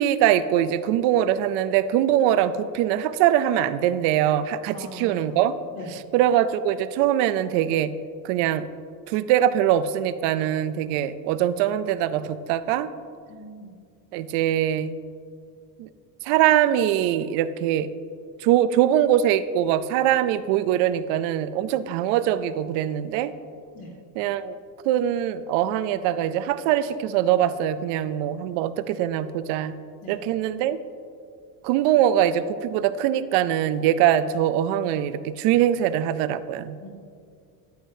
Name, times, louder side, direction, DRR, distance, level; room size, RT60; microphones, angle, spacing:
voice 1, 0.0-5.5 6.1-7.9 8.2-8.7 9.1-12.9 14.1-14.9 15.8-15.9 16.2-17.9 18.4-23.4 24.2-24.5 24.8-29.8 30.1-30.8 31.6-36.8, right 11 dB, 65° right, 13 dB, 0.5 m, -22 dB
voice 2, 4.7-5.5 5.7-5.9 13.3-13.7 23.7-23.9 30.0-30.1 36.8-36.9, left 1 dB, 55° left, -4 dB, 2.2 m, -41 dB
10.0 x 9.4 x 2.7 m, 2.2 s
cardioid pair, 140°, 47 cm